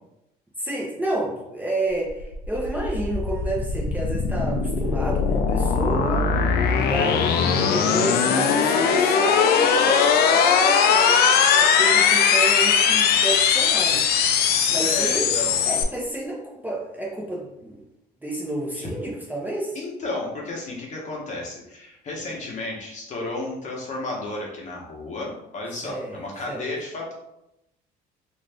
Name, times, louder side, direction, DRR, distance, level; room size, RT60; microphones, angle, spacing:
voice 1, 0.6-6.3 6.8-14.1 14.7-15.3 15.7-17.8 18.2-19.8 25.8-26.2 26.5-26.6, right 1 dB, 10° right, -3 dB, 0.6 m, -30 dB
sound 1, 2.1-15.8, left 6 dB, 70° left, 0.4 m, -20 dB
voice 2, 14.8-15.6 18.8-18.9 19.7-27.1, left 2 dB, 45° left, -2 dB, 0.9 m, -32 dB
2.6 x 2.4 x 3.3 m, 0.86 s
cardioid pair, 110°, 17 cm